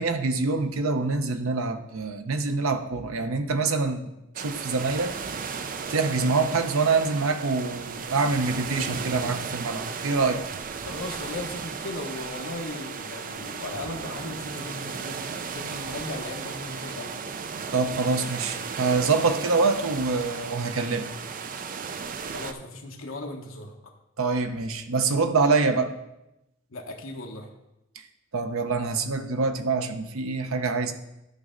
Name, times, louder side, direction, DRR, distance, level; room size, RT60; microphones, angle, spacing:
voice 1, 0.0-5.2 5.9-10.4 17.7-21.1 24.2-25.9 28.3-30.9, right 4 dB, 80° right, 8 dB, 0.8 m, -25 dB
sound 1, 4.3-22.5, right 5 dB, 40° right, 0.5 m, -35 dB
voice 2, 10.8-17.1 22.3-23.9 26.7-27.5, left 2 dB, 70° left, 1 dB, 1.1 m, -37 dB
11.5 x 5.3 x 3.8 m, 0.89 s
head